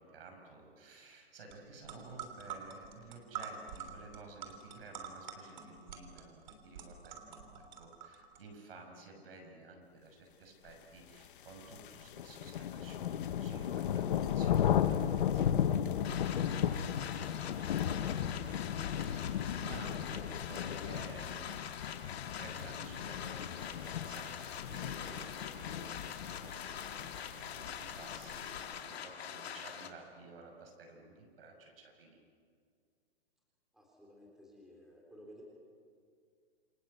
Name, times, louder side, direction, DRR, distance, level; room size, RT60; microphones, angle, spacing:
voice 1, 0.0-16.2 16.7-18.6 18.9-21.7 22.2-32.2, right 3 dB, 65° right, 3 dB, 6.5 m, -53 dB
sound 1, 1.5-1.6 1.8-8.4, right 8 dB, 45° right, 3.3 m, -46 dB
sound 2, 11.2-28.8, left 9 dB, 55° left, 1.3 m, -35 dB
sound 3, 16.0-29.9, left 8 dB, 80° left, 2.5 m, -44 dB
voice 2, 33.7-35.4, equal, ahead, -3 dB, 3.6 m, -55 dB
28.5 x 25.5 x 8.2 m, 2.1 s
hypercardioid pair, 180°, 31 cm